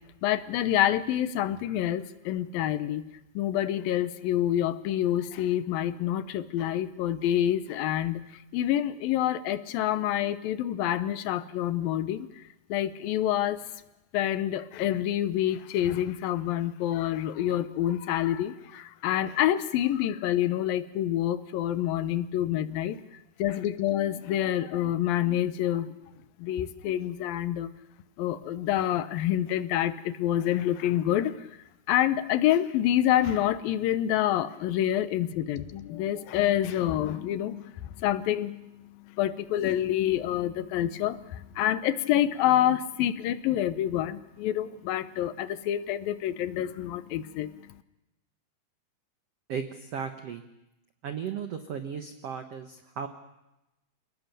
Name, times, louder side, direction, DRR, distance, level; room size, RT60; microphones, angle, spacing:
voice 1, 0.2-3.0 3.4-8.2 8.5-12.4 12.7-13.6 14.1-23.0 23.4-25.9 26.4-27.7 28.2-31.4 31.9-38.6 39.2-47.5, left 12 dB, 75° left, 14 dB, 2.4 m, -27 dB
voice 2, 49.5-50.4 51.0-53.1, right 7 dB, 85° right, 7 dB, 1.3 m, -35 dB
28.5 x 19.0 x 6.7 m, 0.93 s
omnidirectional pair, 4.7 m